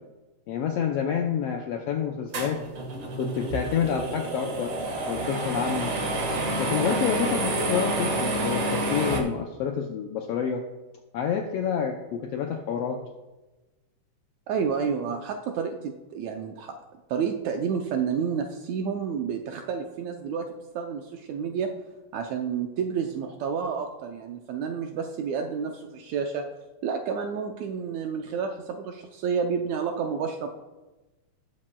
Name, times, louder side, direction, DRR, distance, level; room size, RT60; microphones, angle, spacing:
voice 1, 0.5-2.6 3.2-4.7 5.1-5.9 6.6-10.6 11.1-13.0, left 7 dB, 80° left, 3 dB, 1.4 m, -28 dB
sound 1, 2.3-9.2, right 1 dB, 50° right, 2.2 m, -28 dB
voice 2, 14.5-16.7 17.1-20.5 20.7-21.7 22.1-26.5 26.8-30.5, right 6 dB, 75° right, 3 dB, 1.8 m, -30 dB
19.0 x 7.4 x 2.2 m, 1.1 s
omnidirectional pair, 3.5 m